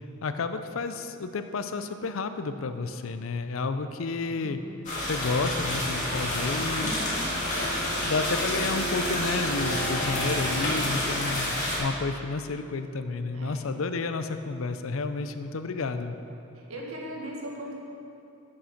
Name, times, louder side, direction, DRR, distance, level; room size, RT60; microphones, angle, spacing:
voice 1, 0.2-4.6 5.1-6.9 7.5-16.2, left 4 dB, 75° left, 9 dB, 0.5 m, -31 dB
sound 1, 4.8-11.8, left 1 dB, 35° left, 2.2 m, -29 dB
voice 2, 6.8-7.2 11.0-11.1 13.3-13.5 16.5-17.7, right 1 dB, 85° right, -2 dB, 1.7 m, -38 dB
Bowed string instrument, 6.9-10.5, right 3 dB, 65° right, 1.3 m, -37 dB
9.5 x 6.5 x 5.8 m, 2.8 s
head